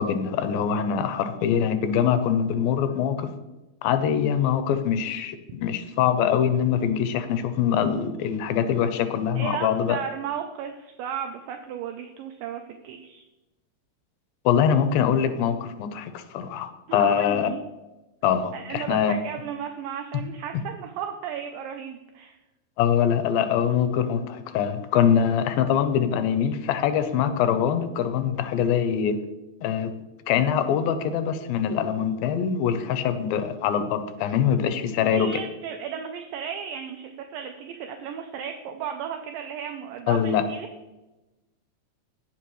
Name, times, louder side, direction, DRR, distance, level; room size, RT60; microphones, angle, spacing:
voice 1, 0.0-3.3 3.8-10.0 14.5-17.5 18.2-19.1 22.8-29.2 29.6-29.9 30.3-35.3 40.1-40.4, left 8 dB, 80° left, 9 dB, 2.5 m, -23 dB
voice 2, 9.4-13.2 16.9-17.6 18.5-22.4 34.2-34.3 35.0-40.7, right 8 dB, 80° right, 5 dB, 2.2 m, -35 dB
16.5 x 5.8 x 3.1 m, 1.0 s
omnidirectional pair, 4.2 m